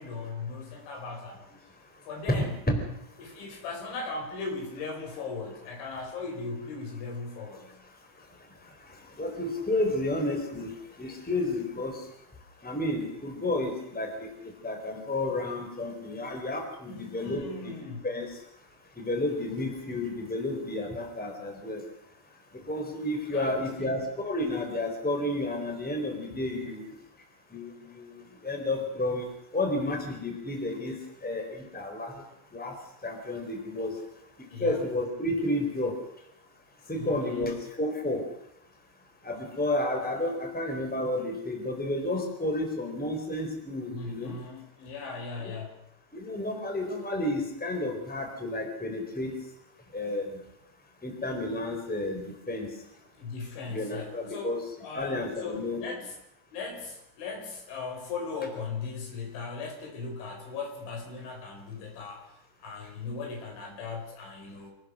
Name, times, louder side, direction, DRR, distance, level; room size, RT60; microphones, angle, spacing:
voice 1, 0.0-1.5 2.1-2.5 3.2-7.8 16.9-18.1 23.3-24.0 34.5-34.8 37.0-37.5 43.9-45.7 53.2-54.5 54.8-56.1 56.5-62.4 62.6-64.7, left 4 dB, 90° left, 2 dB, 7.3 m, -38 dB
voice 2, 2.3-2.8 9.2-10.7 11.0-12.0 12.6-17.7 18.0-18.3 19.0-21.8 22.5-26.9 27.5-29.3 29.5-32.1 32.5-34.0 34.4-35.9 36.9-38.2 39.2-44.3 45.4-45.5 46.1-49.4 49.9-50.4 51.0-52.7 53.7-54.6 54.9-55.8, left 1 dB, ahead, 4 dB, 3.4 m, -31 dB
26.0 x 18.5 x 6.4 m, 0.79 s
omnidirectional pair, 5.2 m